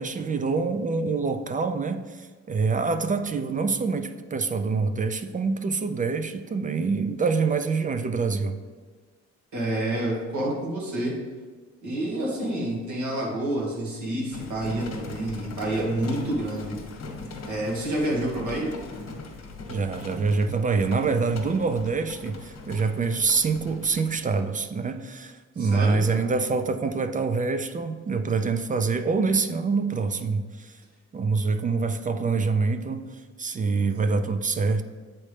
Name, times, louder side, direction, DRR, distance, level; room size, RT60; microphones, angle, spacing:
voice 1, 0.0-8.6 19.7-30.8 31.1-34.8, right 4 dB, 25° right, 9 dB, 0.4 m, -26 dB
voice 2, 9.5-11.1 11.8-16.8 17.4-18.7 25.6-26.3, right 1 dB, 70° right, -3 dB, 1.7 m, -28 dB
sound 1, 14.3-24.2, left 3 dB, 60° left, 1.1 m, -40 dB
7.4 x 4.3 x 3.3 m, 1.4 s
cardioid pair, 90°, 30 cm